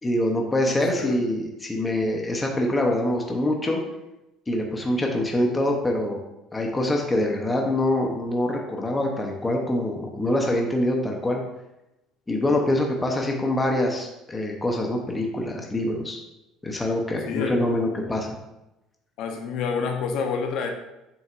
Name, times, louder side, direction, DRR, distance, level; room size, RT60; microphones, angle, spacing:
voice 1, 0.0-3.8 4.5-6.2 6.5-11.4 12.3-16.2 16.6-18.3, left 1 dB, 10° left, 1 dB, 0.9 m, -25 dB
voice 2, 0.7-1.2 17.3-17.6 19.2-20.7, left 5 dB, 55° left, 3 dB, 0.9 m, -28 dB
7.7 x 5.8 x 2.6 m, 0.93 s
cardioid pair, 160°, 0 cm